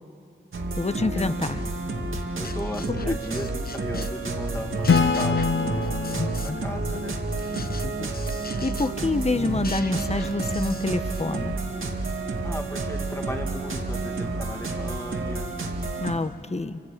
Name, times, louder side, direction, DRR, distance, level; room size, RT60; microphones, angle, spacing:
sound 1, 0.5-16.1, right 3 dB, 80° right, 2.3 m, -30 dB
voice 1, 0.8-1.6 3.1-3.2 8.6-11.5 16.0-16.8, left 3 dB, 35° left, 11 dB, 1.1 m, -26 dB
sound 2, 2.1-4.3 4.5-6.7 6.9-11.3, left 4 dB, 50° left, 1.1 m, -38 dB
voice 2, 2.4-7.1 12.4-15.5, left 1 dB, 15° left, 2 dB, 2.4 m, -37 dB
Acoustic guitar / Strum, 4.9-8.4, left 5 dB, 75° left, 0.9 m, -26 dB
28.5 x 25.5 x 6.7 m, 2.2 s
wide cardioid pair, 65°, 20 cm